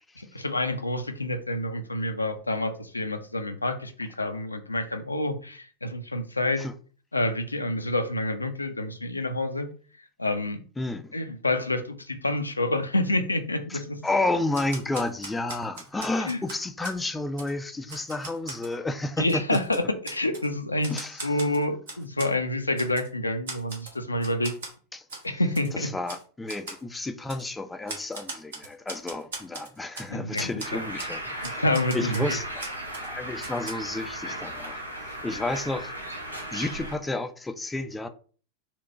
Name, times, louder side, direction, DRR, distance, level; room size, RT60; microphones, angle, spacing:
voice 1, 0.2-6.7 7.1-9.7 10.2-10.6 11.1-14.0 16.3-16.4 19.2-20.9 21.2-24.5 25.2-25.9 30.1-30.8 31.6-32.4 35.3-35.4, left 1 dB, 80° left, 0.5 m, -28 dB
voice 2, 10.8-11.1 13.7-19.6 20.9-21.2 24.9-25.0 25.7-31.6 31.9-32.6 32.9-35.9 36.2-38.1, left 2 dB, 10° left, 0.4 m, -31 dB
Typewriter, 14.5-17.0 17.4-17.5 17.9-18.7 19.2-20.5 20.8-22.3 22.8-23.1 23.5-24.0 24.2-24.7 25.1-25.3 25.6-25.7 26.1-26.2 26.5-26.8 27.3-27.4 27.9-30.1 30.4-30.7 31.0-31.1 31.4-33.1 33.4-33.7, right 3 dB, 65° right, 1.1 m, -39 dB
Bird, 30.6-36.9, right 1 dB, 85° right, 0.8 m, -36 dB
4.3 x 2.2 x 3.9 m
figure-of-eight pair, 90°, 0 cm